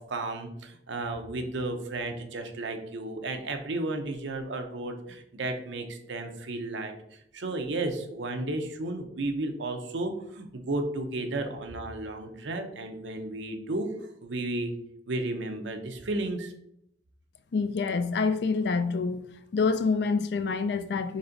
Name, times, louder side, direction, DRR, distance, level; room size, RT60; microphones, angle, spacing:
voice 1, 0.0-6.9 7.3-13.9 14.2-14.7 15.1-16.5, right 2 dB, 75° right, 0.7 m, -33 dB
voice 2, 17.5-19.2 19.5-21.2, left 4 dB, 60° left, 0.4 m, -27 dB
4.2 x 3.3 x 3.9 m
head